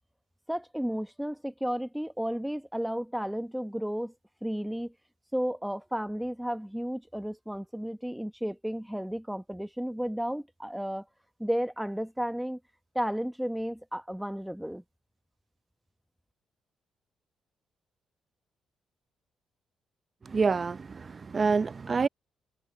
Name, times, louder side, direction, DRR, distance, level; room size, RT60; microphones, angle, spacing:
voice 1, 0.5-4.1 4.4-4.9 5.3-11.1 11.4-12.6 12.9-14.8, equal, 5° right, 1.2 m, -33 dB
voice 2, 20.2-22.1, right 4 dB, 35° right, 0.6 m, -27 dB
cardioid pair, 90°, 0 cm